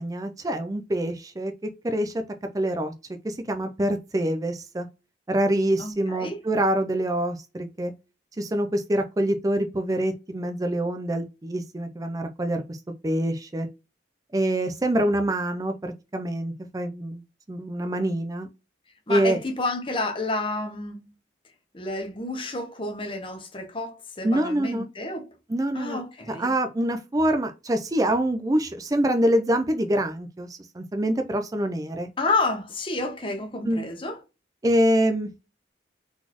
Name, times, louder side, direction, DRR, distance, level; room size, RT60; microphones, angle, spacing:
voice 1, 0.0-2.1 2.5-2.9 3.2-4.9 5.3-7.9 8.4-12.8 13.0-13.7 14.3-17.2 17.5-18.5 19.1-19.4 24.2-24.9 25.5-26.0 26.3-32.1 33.7-33.9 34.6-35.3, right 1 dB, 20° right, 0.4 m, -25 dB
voice 2, 5.8-6.4 19.1-21.1 21.7-25.3 25.7-26.5 32.2-34.2, left 2 dB, 30° left, 0.9 m, -30 dB
4.0 x 4.0 x 2.9 m
head